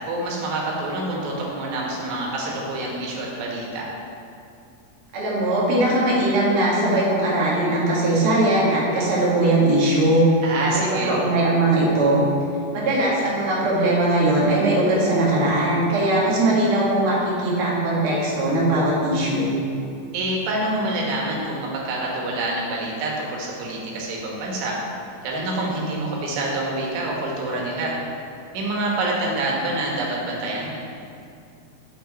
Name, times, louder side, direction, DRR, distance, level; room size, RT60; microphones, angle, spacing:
voice 1, 0.1-3.9 10.4-11.2 20.1-24.8 25.2-28.0 28.5-30.7, right 2 dB, 85° right, -2 dB, 3.5 m, -27 dB
voice 2, 5.1-10.2 10.6-12.2 12.7-19.5, right 1 dB, 45° right, -6 dB, 2.0 m, -20 dB
8.2 x 7.2 x 4.2 m, 2.4 s
omnidirectional pair, 4.8 m